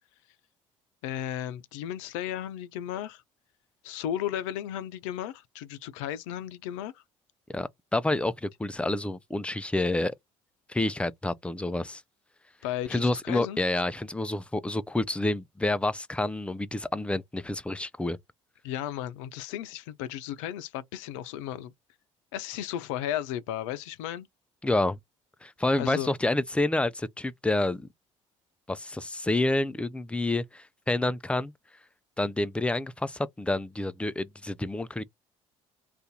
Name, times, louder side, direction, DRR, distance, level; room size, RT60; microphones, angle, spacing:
voice 1, 1.0-3.2 3.8-7.0 12.6-13.6 18.6-21.7 22.3-24.3 25.8-26.1, left 11 dB, 75° left, 0.5 m, -34 dB
voice 2, 7.5-10.2 10.7-12.0 12.9-18.2 24.6-25.0 25.4-27.9 28.7-31.5 32.2-35.0, left 2 dB, 5° left, 0.4 m, -28 dB
2.6 x 2.4 x 3.7 m
hypercardioid pair, 60°, 16 cm